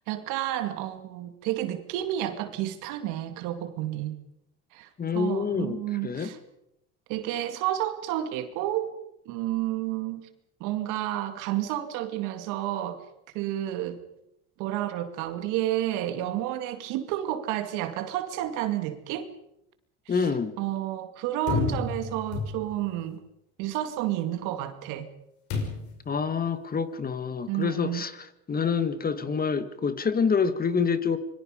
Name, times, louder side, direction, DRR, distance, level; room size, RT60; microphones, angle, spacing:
voice 1, 0.1-4.1 4.7-4.9 5.1-6.4 7.1-8.9 9.3-10.3 10.6-13.0 13.3-14.0 14.6-19.3 20.1-20.3 20.6-23.2 23.6-25.1 27.5-28.0, right 13 dB, 70° right, 2.3 m, -30 dB
voice 2, 5.0-5.8 6.0-6.3 20.1-20.6 26.0-31.2, left 5 dB, 30° left, 1.8 m, -27 dB
sound 1, 21.5-23.0 25.5-26.1, left 4 dB, 65° left, 6.0 m, -31 dB
25.5 x 22.5 x 5.1 m
supercardioid pair, 85°, 32 cm